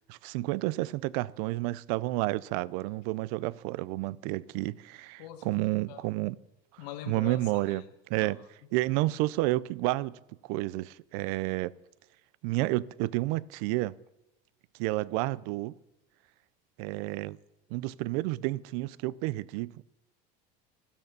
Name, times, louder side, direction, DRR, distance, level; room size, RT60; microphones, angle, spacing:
voice 1, 0.0-6.4 7.1-8.4 8.7-10.2 10.5-11.7 12.4-13.9 14.8-15.7 16.8-17.4 17.7-19.8, right 19 dB, 70° right, 0.5 m, -30 dB
voice 2, 5.2-5.5 5.9-6.0 6.8-7.4 7.7-7.8 8.2-8.3, left 11 dB, 85° left, 2.2 m, -42 dB
13.5 x 12.5 x 6.8 m
supercardioid pair, 140°, 21 cm